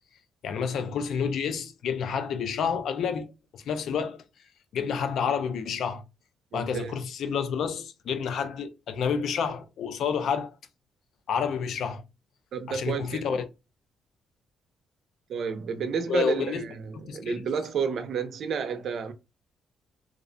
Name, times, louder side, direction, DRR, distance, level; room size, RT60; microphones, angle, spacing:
voice 1, 0.4-3.3 3.5-4.2 4.7-6.0 6.5-10.5 11.3-12.0 12.7-13.4 16.1-16.6 16.9-17.5, left 6 dB, 70° left, 0.4 m, -29 dB
voice 2, 6.5-7.0 12.5-13.4 15.3-19.1, right 6 dB, 65° right, 0.5 m, -31 dB
2.4 x 2.0 x 2.5 m
cardioid pair, 90°, 0 cm